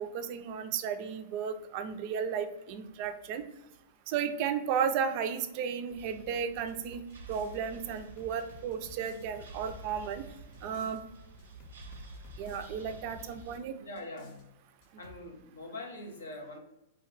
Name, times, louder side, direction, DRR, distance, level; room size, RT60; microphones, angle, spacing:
voice 1, 0.0-3.5 4.1-7.0 7.3-10.2 10.6-11.0 12.4-13.8, right 7 dB, 50° right, 9 dB, 0.3 m, -34 dB
sound 1, 5.9-13.6, right 3 dB, 85° right, 0.6 m, -50 dB
sound 2, 6.6-7.6 8.0-11.0 11.4-13.6 14.0-14.5 14.8-15.2, left 5 dB, 50° left, 0.6 m, -54 dB
voice 2, 13.8-14.5 15.0-16.6, left 2 dB, 90° left, 1 dB, 0.7 m, -43 dB
2.2 x 2.1 x 3.9 m, 0.88 s
hypercardioid pair, 115°, 0 cm